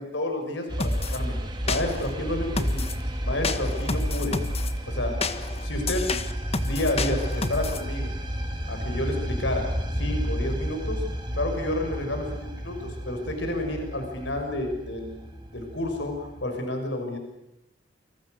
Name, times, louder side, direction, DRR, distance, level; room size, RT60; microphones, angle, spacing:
voice 1, 0.0-1.4 1.7-2.9 3.2-4.4 4.9-5.3 5.6-6.1 6.6-8.1 8.7-9.7 9.9-11.0 11.3-17.2, left 1 dB, 75° left, 4 dB, 6.2 m, -30 dB
sound 1, 0.7-16.4, equal, 25° right, 3.5 m, -32 dB
sound 2, 0.8-1.2 1.7-2.1 2.6-3.0 3.4-4.7 5.2-7.8, left 3 dB, 35° left, 1.6 m, -30 dB
29.0 x 26.0 x 6.6 m, 0.85 s
head